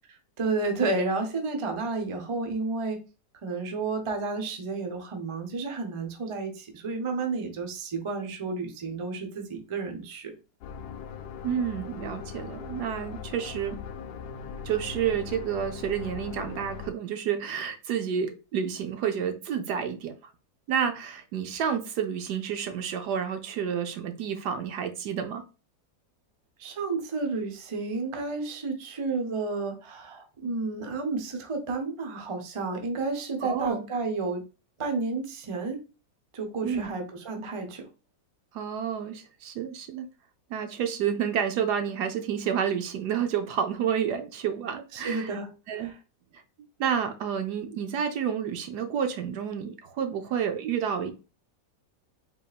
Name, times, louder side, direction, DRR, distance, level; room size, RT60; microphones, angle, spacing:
voice 1, 0.4-3.0 3.4-10.3 26.6-34.4 34.8-35.8 36.3-37.9 44.9-46.0, right 3 dB, 45° right, 0.4 m, -31 dB
sound 1, 10.6-16.9, left 6 dB, 75° left, 1.1 m, -40 dB
voice 2, 11.4-13.8 14.7-20.1 20.7-25.4 33.4-33.8 36.6-36.9 38.5-40.1 40.5-45.3 45.7-45.9 46.8-51.1, right 8 dB, 75° right, 1.2 m, -30 dB
3.9 x 3.6 x 2.3 m
omnidirectional pair, 1.8 m